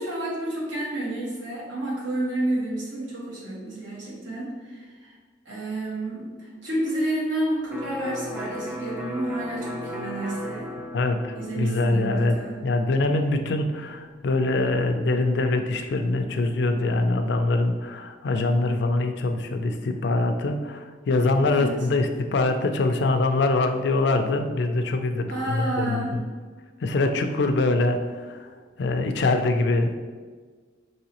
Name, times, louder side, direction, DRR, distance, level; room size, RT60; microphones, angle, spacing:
voice 1, 0.0-5.1 5.4-10.7 11.3-12.6 21.5-21.8 25.3-26.2, right 1 dB, 80° right, -5 dB, 1.3 m, -30 dB
Electric guitar, 7.7-15.4, left 1 dB, 5° right, 0.4 m, -38 dB
voice 2, 10.9-12.4 12.6-26.2 26.8-28.5 28.8-30.0, left 2 dB, 65° left, 6 dB, 0.4 m, -24 dB
4.8 x 3.1 x 2.9 m, 1.5 s
head